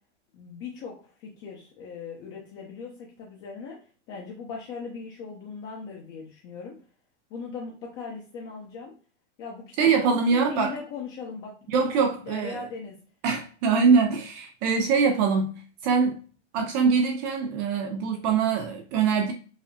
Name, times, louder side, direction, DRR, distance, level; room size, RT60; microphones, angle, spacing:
voice 1, 0.3-3.8 4.1-6.7 7.3-8.9 9.4-13.0, left 5 dB, 35° left, 0.7 m, -39 dB
voice 2, 9.8-10.7 11.7-12.6 13.2-16.2 16.5-19.3, right 5 dB, 35° right, 0.4 m, -23 dB
4.8 x 2.1 x 2.7 m
supercardioid pair, 140°, 36 cm